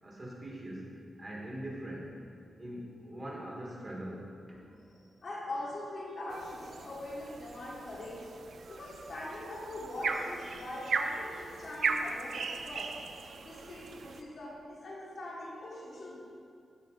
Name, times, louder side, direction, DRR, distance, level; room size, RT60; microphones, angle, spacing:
voice 1, 0.0-0.9 1.2-2.1 2.6-5.0, right 1 dB, 25° right, -4 dB, 1.7 m, -42 dB
voice 2, 4.9-8.3 8.7-13.0 13.4-16.2, left 1 dB, 50° left, -4 dB, 1.5 m, -42 dB
sound 1, 6.3-14.2, right 4 dB, 65° right, 0.5 m, -38 dB
13.5 x 4.7 x 3.9 m, 2.4 s
wide cardioid pair, 170°, 0 cm